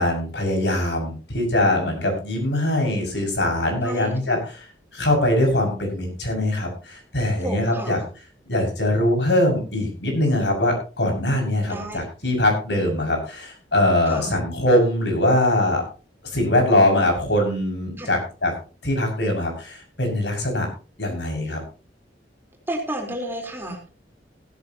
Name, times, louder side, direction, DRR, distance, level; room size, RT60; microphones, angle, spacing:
voice 1, 0.0-4.6 4.9-8.0 8.5-15.8 16.3-18.5 18.8-20.7 21.0-21.6, left 1 dB, 80° left, 2 dB, 6.3 m, -22 dB
voice 2, 3.8-4.3 7.4-8.1 11.7-12.0 14.1-14.3 18.0-18.2 22.7-23.9, right 1 dB, 15° right, 1 dB, 4.0 m, -31 dB
16.0 x 14.0 x 2.9 m, 0.36 s
head